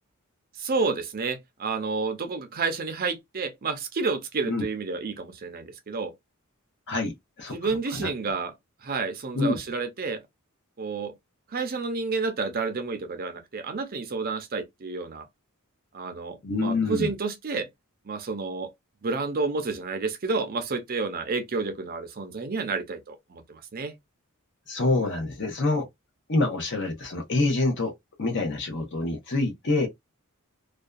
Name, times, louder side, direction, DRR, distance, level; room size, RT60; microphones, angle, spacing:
voice 1, 0.6-6.1 7.5-8.5 8.8-10.2 10.8-11.1 11.5-15.3 15.9-17.7 18.0-18.7 19.0-23.9, right 4 dB, 40° right, 0.5 m, -30 dB
voice 2, 16.4-17.1 24.7-25.9 26.3-27.9 28.2-29.9, left 2 dB, 55° left, 0.9 m, -26 dB
2.5 x 2.2 x 2.3 m
head